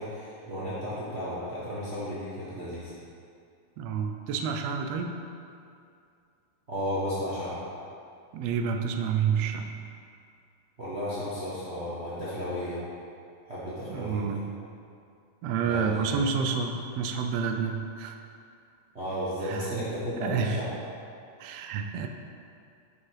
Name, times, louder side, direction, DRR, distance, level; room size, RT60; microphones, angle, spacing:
voice 1, 0.0-2.9 6.7-7.6 10.8-12.8 13.4-14.2 15.6-16.2 18.9-20.7, equal, 60° right, -10 dB, 0.6 m, -33 dB
voice 2, 3.8-5.2 8.3-9.7 13.9-14.5 15.4-18.2 19.4-19.7 20.2-20.6 21.4-22.1, right 6 dB, 90° right, 5 dB, 1.4 m, -29 dB
7.5 x 5.6 x 4.7 m, 2.4 s
omnidirectional pair, 3.5 m